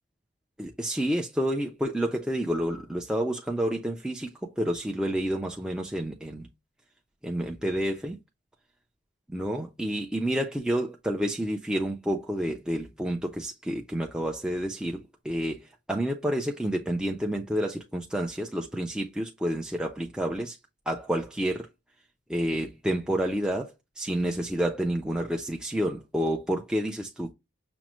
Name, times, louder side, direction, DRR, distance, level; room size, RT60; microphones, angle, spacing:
voice 1, 0.6-6.5 7.2-8.2 9.3-20.6 20.9-21.7 22.3-27.3, equal, 5° right, 0.3 m, -29 dB
6.0 x 2.0 x 3.0 m
head